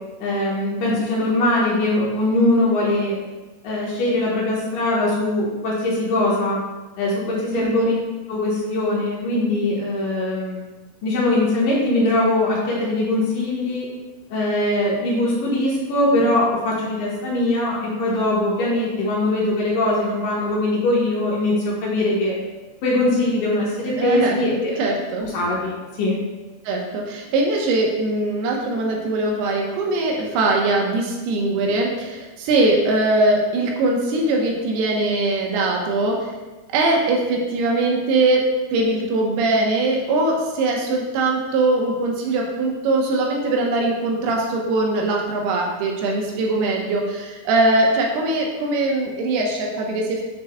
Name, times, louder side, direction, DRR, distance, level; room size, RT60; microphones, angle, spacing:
voice 1, 0.2-3.2 3.6-6.6 7.0-7.9 8.3-10.6 11.0-13.9 14.3-22.3 22.8-24.8 25.2-26.2, left 1 dB, 70° left, -5 dB, 2.5 m, -21 dB
voice 2, 7.5-7.9 24.0-25.3 26.6-36.3 36.7-50.3, right 2 dB, 90° right, 0 dB, 3.0 m, -21 dB
7.4 x 7.1 x 2.2 m, 1.2 s
omnidirectional pair, 4.5 m